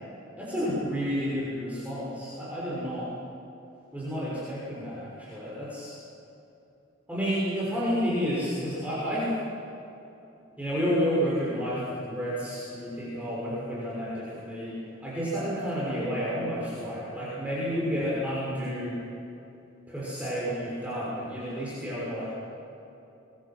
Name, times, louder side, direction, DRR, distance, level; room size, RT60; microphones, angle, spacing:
voice 1, 0.3-3.1 3.9-6.0 7.1-9.3 10.6-18.9 19.9-22.3, equal, 10° right, -8 dB, 6.3 m, -30 dB
25.0 x 23.0 x 6.2 m, 2.9 s
head